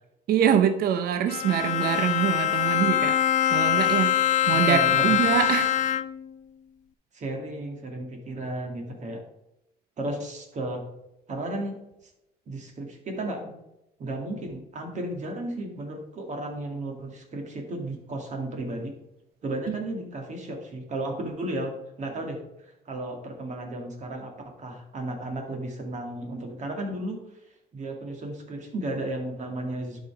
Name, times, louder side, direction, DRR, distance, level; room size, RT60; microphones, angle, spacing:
voice 1, 0.3-3.2 3.5-4.2 4.5-5.8 19.7-19.8, right 9 dB, 65° right, 9 dB, 0.8 m, -24 dB
Bowed string instrument, 1.3-6.3, left 11 dB, 45° left, 0.4 m, -23 dB
voice 2, 4.5-5.1 7.1-9.2 10.0-10.8 11.3-11.8 12.5-13.5 14.0-18.9 19.4-27.2 27.7-30.0, right 1 dB, 45° right, 3 dB, 2.3 m, -34 dB
11.5 x 5.6 x 3.5 m, 0.88 s
cardioid pair, 110°, 17 cm